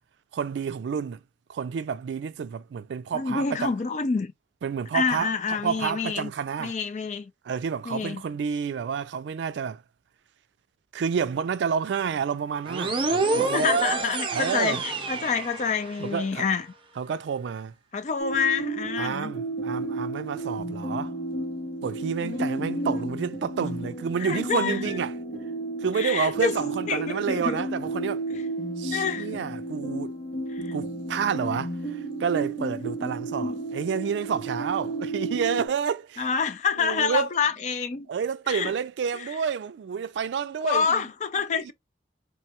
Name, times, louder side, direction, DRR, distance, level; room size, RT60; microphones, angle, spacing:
voice 1, 0.3-1.2 1.5-3.7 4.6-6.8 7.5-9.8 10.9-13.7 14.3-14.8 16.0-16.5 17.0-17.7 19.0-21.1 21.8-25.1 25.8-28.2 28.8-30.1 30.7-36.3 36.8-37.3 38.1-41.0 41.5-41.7, right 6 dB, 80° right, 0.3 m, -29 dB
voice 2, 3.1-4.3 4.9-6.3 6.6-7.3 7.9-8.2 13.3-16.7 17.9-19.3 22.2-23.1 24.2-25.0 25.9-26.6 26.9-27.6 28.9-29.3 30.5-30.8 33.0-33.6 36.2-38.1 38.5-38.7 39.1-39.3 40.6-41.7, left 5 dB, 40° left, 0.4 m, -28 dB
sound 1, 12.7-16.2, right 3 dB, 30° right, 0.6 m, -27 dB
sound 2, 18.2-35.7, right 2 dB, 65° left, 1.2 m, -33 dB
3.0 x 2.2 x 2.8 m
head